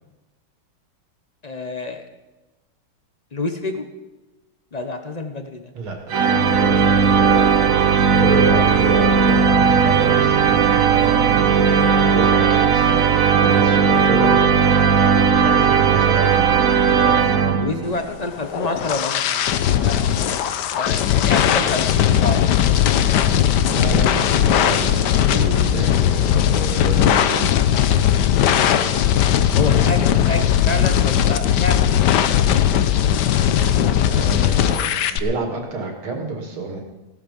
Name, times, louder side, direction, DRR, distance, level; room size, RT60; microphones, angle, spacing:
voice 1, 1.4-2.1 3.3-3.9 4.7-5.7 6.5-8.2 17.6-23.0 29.5-32.6, left 2 dB, 45° left, 6 dB, 0.5 m, -29 dB
voice 2, 5.7-6.2 7.0-7.3 8.1-14.8 15.3-16.8 21.3-21.6 23.7-27.6 34.0-36.8, right 3 dB, 70° right, 3 dB, 3.1 m, -29 dB
sound 1, 6.1-18.0, right 6 dB, 55° right, 1.0 m, -16 dB
sound 2, 18.2-35.2, left 10 dB, 65° left, 1.1 m, -18 dB
17.0 x 12.5 x 5.3 m, 1.1 s
omnidirectional pair, 2.4 m